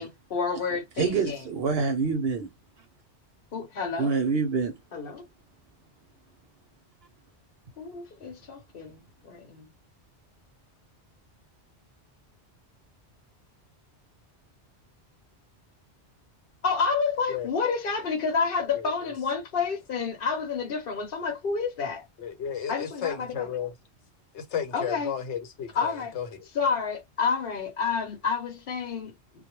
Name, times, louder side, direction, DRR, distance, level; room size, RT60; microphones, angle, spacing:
voice 1, 0.0-1.4 3.5-4.1 4.9-5.3 7.8-9.7 16.6-22.0 22.7-23.5 24.7-25.1 25.7-26.1 26.5-29.1, left 5 dB, 55° left, 0.9 m, -29 dB
voice 2, 1.0-2.5 4.0-4.7, right 5 dB, 65° right, 0.8 m, -26 dB
voice 3, 22.2-23.7 24.3-26.4, left 8 dB, 80° left, 1.0 m, -33 dB
2.2 x 2.1 x 2.9 m
omnidirectional pair, 1.2 m